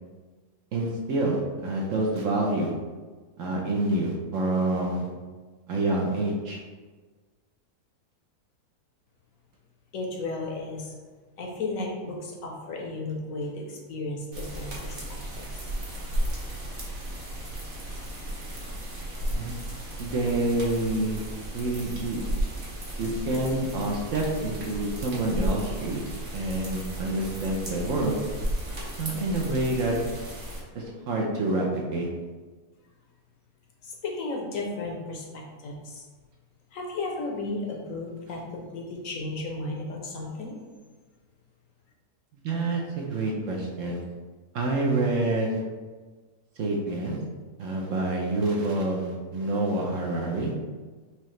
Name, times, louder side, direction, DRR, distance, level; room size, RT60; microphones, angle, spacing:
voice 1, 0.7-2.7 3.4-5.1 5.7-6.6 19.3-19.6 20.0-21.2 21.5-22.3 23.0-26.0 26.3-28.2 29.0-30.0 30.7-32.1 42.4-44.0 44.5-45.6 46.6-47.2 47.6-50.5, right 2 dB, 65° right, -1 dB, 0.9 m, -27 dB
voice 2, 9.9-10.9 11.4-15.5 33.8-36.0 36.7-40.6, left 2 dB, 65° left, 0 dB, 1.0 m, -34 dB
sound 1, 14.3-30.6, right 1 dB, 40° right, 1.0 m, -34 dB
4.8 x 2.8 x 3.1 m, 1.4 s
omnidirectional pair, 1.6 m